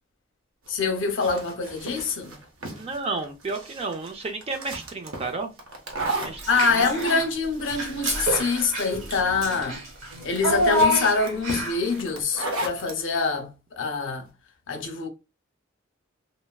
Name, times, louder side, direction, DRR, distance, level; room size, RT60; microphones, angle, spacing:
voice 1, 0.7-2.4 6.5-9.8 10.2-13.5 13.8-14.3 14.7-15.1, left 4 dB, 65° left, 0.7 m, -25 dB
sound 1, 0.7-13.0, right 2 dB, 70° right, 0.7 m, -36 dB
voice 2, 2.6-5.5 6.1-6.9, right 3 dB, 30° right, 0.4 m, -32 dB
Child speech kid speaking / Bathtub (filling or washing), 6.4-7.3 7.7-11.9, equal, 85° right, 1.0 m, -27 dB
3.4 x 2.0 x 2.3 m
head